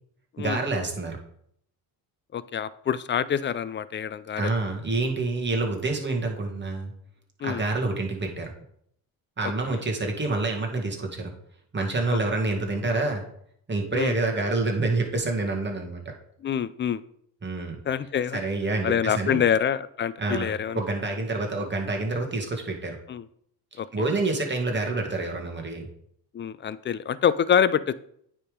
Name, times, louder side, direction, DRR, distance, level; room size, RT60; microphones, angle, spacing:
voice 1, 0.4-1.2 4.4-6.9 7.4-8.5 9.4-11.3 11.7-13.2 13.7-16.0 17.4-17.8 18.3-19.4 20.2-20.5 20.8-23.0 23.7-25.9, right 3 dB, 25° right, 2 dB, 1.9 m, -27 dB
voice 2, 2.3-4.5 7.4-7.6 9.4-9.8 12.1-12.2 13.9-14.1 16.4-17.0 17.9-18.4 18.8-20.8 23.1-23.2 23.8-23.9 26.3-28.0, left 8 dB, 30° left, 16 dB, 0.4 m, -26 dB
9.1 x 3.7 x 5.1 m, 0.68 s
supercardioid pair, 75°, 40 cm